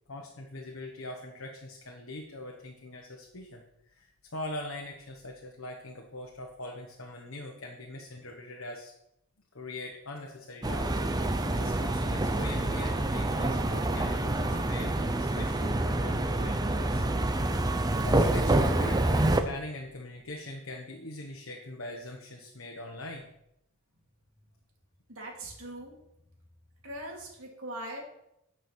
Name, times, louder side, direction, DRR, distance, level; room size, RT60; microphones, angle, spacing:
voice 1, 0.1-8.9 9.5-17.0 17.3-17.5 18.0-23.3, left 1 dB, 65° left, 1 dB, 1.3 m, -42 dB
sound 1, 10.6-19.4, right 1 dB, 20° right, 0.6 m, -27 dB
voice 2, 25.1-26.0 26.8-28.0, right 1 dB, 75° right, -2 dB, 3.1 m, -41 dB
10.0 x 6.2 x 6.2 m, 0.82 s
head